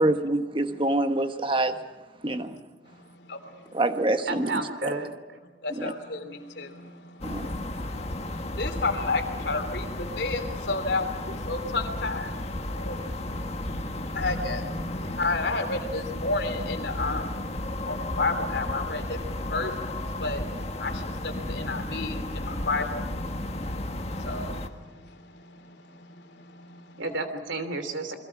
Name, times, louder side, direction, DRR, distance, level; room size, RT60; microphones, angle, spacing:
voice 1, 0.0-1.8 2.2-2.5 3.7-4.5 5.7-5.9 7.2-7.5, right 1 dB, 30° right, 1.2 m, -25 dB
voice 2, 2.3-2.6 2.9-3.8 5.6-20.5 20.7-27.0, left 3 dB, 65° left, 3.3 m, -33 dB
voice 3, 4.3-5.1 27.0-28.2, right 3 dB, 90° right, 3.1 m, -31 dB
sound 1, 7.2-24.7, left 1 dB, 35° left, 1.4 m, -33 dB
29.0 x 22.0 x 6.0 m
head